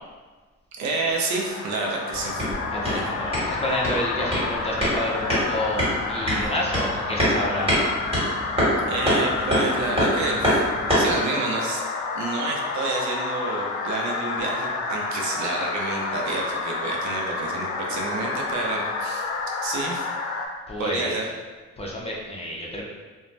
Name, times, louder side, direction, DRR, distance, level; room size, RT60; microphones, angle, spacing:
voice 1, 0.8-2.4 2.8-3.0 8.9-10.6 11.0-11.8 12.1-19.2 19.6-20.1 20.8-21.3, right 3 dB, 70° right, 0 dB, 0.6 m, -29 dB
sound 1, 1.1-20.5, left 3 dB, 80° left, 0.5 m, -30 dB
sound 2, 2.1-11.2, equal, 20° right, 1.4 m, -26 dB
voice 2, 2.7-7.7 20.7-21.2 21.8-22.8, left 1 dB, 20° left, -3 dB, 0.5 m, -29 dB
2.5 x 2.1 x 3.1 m, 1.3 s
cardioid pair, 90°, 30 cm